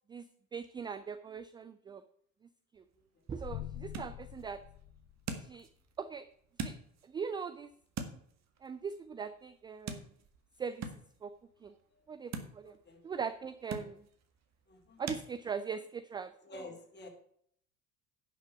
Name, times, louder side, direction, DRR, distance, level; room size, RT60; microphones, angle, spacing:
voice 1, 0.5-2.0 2.7-2.8 3.3-4.6 5.4-5.7 6.0-6.3 6.6-6.7 7.1-7.7 8.6-10.0 10.6-10.8 11.2-11.3 11.6-11.7 12.1-12.8 13.0-14.0 15.0-16.3, right 6 dB, 10° right, 12 dB, 0.3 m, -40 dB
sound 1, 2.7-15.3, right 5 dB, 35° right, 1.7 m, -47 dB
sound 2, 3.4-5.7, left 14 dB, 40° left, 0.5 m, -45 dB
voice 2, 12.6-13.0 13.8-13.9 14.7-15.0 16.4-17.1, left 1 dB, 25° left, 3 dB, 3.2 m, -49 dB
10.5 x 6.0 x 5.8 m, 0.63 s
figure-of-eight pair, 70°, 44 cm